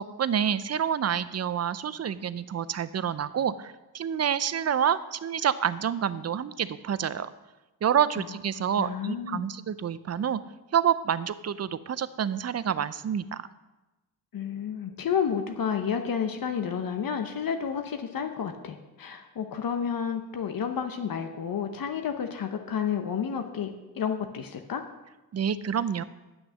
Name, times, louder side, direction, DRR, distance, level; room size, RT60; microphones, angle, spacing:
voice 1, 0.0-7.3 7.8-10.4 10.7-13.5 25.3-26.0, right 8 dB, 40° right, 15 dB, 0.5 m, -28 dB
voice 2, 8.8-9.5 14.3-24.8, left 7 dB, 55° left, 6 dB, 0.9 m, -31 dB
9.0 x 6.2 x 6.2 m, 1.1 s
cardioid pair, 70°, 40 cm